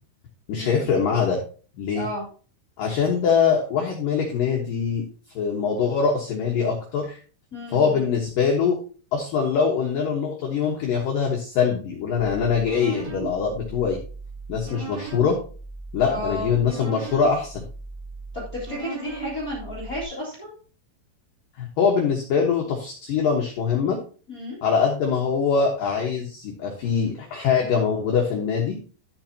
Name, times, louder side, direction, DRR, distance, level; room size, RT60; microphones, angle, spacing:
voice 1, 0.5-1.4 1.8-2.1 2.8-5.0 5.4-7.2 7.7-8.8 9.1-14.0 14.5-15.4 15.9-17.6 21.6-24.0 24.6-28.8, left 6 dB, 85° left, 0 dB, 1.9 m, -23 dB
voice 2, 7.5-8.0 16.0-16.5 18.3-20.5 24.3-24.6, left 1 dB, 60° left, -4 dB, 0.9 m, -32 dB
sound 1, 12.2-20.0, right 5 dB, 50° right, 4.6 m, -37 dB
12.0 x 7.3 x 2.8 m, 0.38 s
omnidirectional pair, 5.9 m